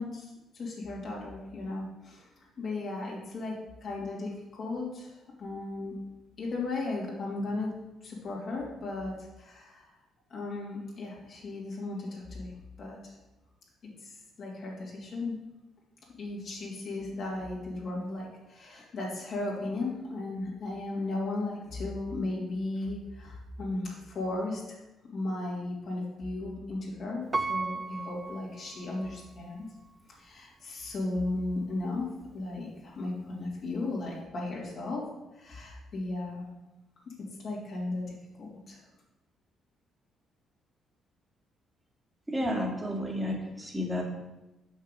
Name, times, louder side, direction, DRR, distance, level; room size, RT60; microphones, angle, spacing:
voice 1, 0.0-2.3 2.6-3.5 3.8-5.9 6.4-7.7 8.0-9.9 10.3-12.5 12.8-13.1 14.0-14.1 14.4-15.4 16.2-24.8 25.1-29.7 30.1-32.1 32.3-35.0 35.3-36.5 37.4-38.8, left 2 dB, 55° left, -4 dB, 2.6 m, -35 dB
Piano, 27.3-29.3 29.9-30.0, right 3 dB, 30° right, 0.5 m, -35 dB
voice 2, 42.3-44.0, equal, 15° right, -1 dB, 2.1 m, -31 dB
6.5 x 5.7 x 5.3 m, 1.0 s
hypercardioid pair, 45°, 0 cm